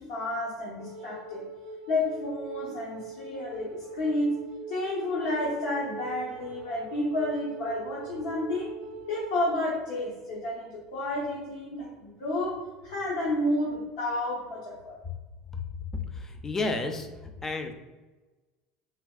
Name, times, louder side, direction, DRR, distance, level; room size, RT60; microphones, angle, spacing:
voice 1, 0.0-1.5 1.9-8.7 9.1-15.0, left 1 dB, 80° left, -6 dB, 0.8 m, -31 dB
Wind instrument woodwind instrument, 0.8-9.2, right 2 dB, 70° right, 0.4 m, -42 dB
voice 2, 16.1-17.1 17.4-17.7, left 2 dB, 15° left, 5 dB, 0.4 m, -31 dB
3.4 x 2.8 x 2.3 m, 1.2 s
supercardioid pair, 130°, 2 cm